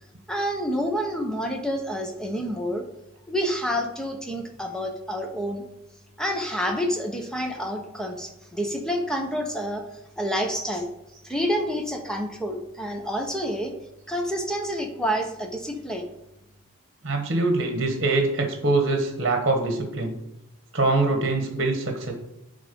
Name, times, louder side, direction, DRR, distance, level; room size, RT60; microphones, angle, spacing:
voice 1, 0.3-2.8 3.3-5.6 6.2-9.8 10.2-10.9 11.2-13.7 14.1-16.1, equal, 5° left, 2 dB, 1.1 m, -28 dB
voice 2, 17.0-20.2 20.7-22.1, right 2 dB, 50° right, 3 dB, 1.3 m, -23 dB
10.5 x 3.8 x 5.3 m, 0.88 s
head